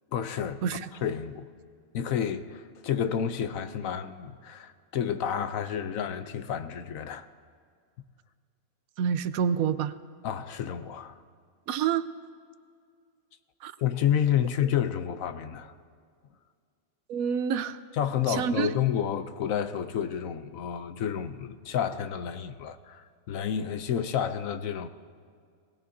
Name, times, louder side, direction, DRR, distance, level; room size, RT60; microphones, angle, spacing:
voice 1, 0.1-0.6 1.0-1.5 1.9-7.3 10.2-11.2 13.8-15.7 18.0-24.9, left 9 dB, 70° left, 1.1 m, -30 dB
voice 2, 9.0-9.9 11.7-12.1 13.6-13.7 17.1-17.8 18.3-18.7, right 7 dB, 75° right, 1.0 m, -27 dB
22.5 x 18.0 x 2.8 m
omnidirectional pair, 1.5 m